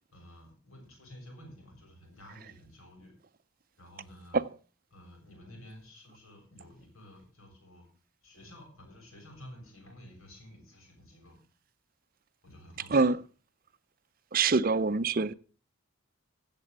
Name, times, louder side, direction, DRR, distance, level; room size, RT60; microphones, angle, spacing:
voice 1, 0.1-3.1 3.8-4.5 4.9-7.9 8.2-11.4 12.4-13.2, left 1 dB, 80° left, 7.2 m, -52 dB
voice 2, 14.3-15.3, right 4 dB, 40° right, 0.5 m, -25 dB
16.0 x 7.6 x 6.7 m
head